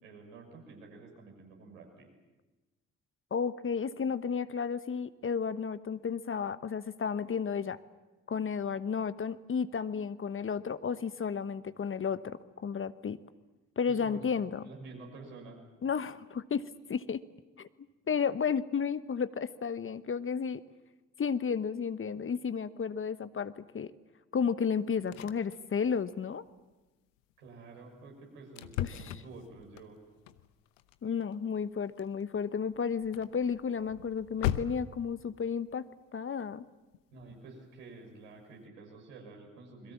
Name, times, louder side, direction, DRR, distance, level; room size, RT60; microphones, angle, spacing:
voice 1, 0.0-2.1 13.9-14.2 14.6-15.6 27.4-30.0 37.1-39.9, right 3 dB, 80° right, 0 dB, 6.4 m, -50 dB
voice 2, 3.3-7.8 8.3-13.2 13.8-14.6 15.8-17.2 17.6-17.7 18.1-20.6 21.2-23.9 24.3-26.4 28.8-29.2 31.0-35.8 36.1-36.6, left 6 dB, 35° left, 14 dB, 1.1 m, -32 dB
sound 1, 24.7-24.8 25.0-25.6 25.9-26.1 26.5-26.7 27.2-27.3 27.9-28.0 28.6-35.1 36.9-37.4 37.9-38.0 38.4-38.5, left 12 dB, 75° left, 1.0 m, -39 dB
28.5 x 22.0 x 7.3 m, 1.1 s
figure-of-eight pair, 45°, 38 cm